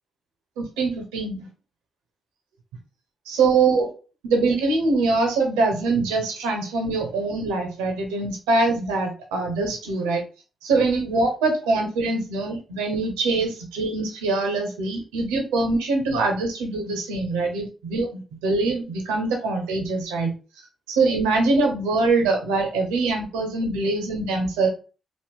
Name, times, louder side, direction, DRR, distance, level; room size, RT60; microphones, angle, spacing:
voice 1, 0.6-1.5 3.3-3.9 4.2-10.2 10.6-20.3 20.9-24.7, right 3 dB, 85° right, 3 dB, 0.7 m, -23 dB
3.0 x 2.0 x 3.5 m, 0.34 s
hypercardioid pair, 40°, 0 cm